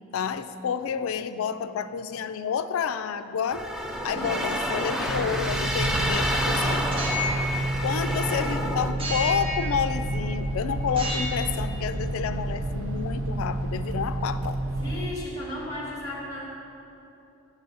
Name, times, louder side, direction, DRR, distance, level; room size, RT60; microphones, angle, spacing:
voice 1, 0.1-3.6 4.0-6.9 7.8-14.6, left 7 dB, 75° left, 11 dB, 0.3 m, -29 dB
sound 1, 3.5-8.9, equal, ahead, 0.3 m, -29 dB
voice 2, 4.1-4.5 14.8-16.4, left 1 dB, 20° left, -5 dB, 1.8 m, -35 dB
sound 2, 5.1-15.1, right 1 dB, 75° right, 0.4 m, -30 dB
sound 3, 6.9-8.4 9.0-10.3 10.9-11.6, left 1 dB, 25° right, 0.7 m, -32 dB
8.0 x 6.7 x 3.9 m, 2.9 s
head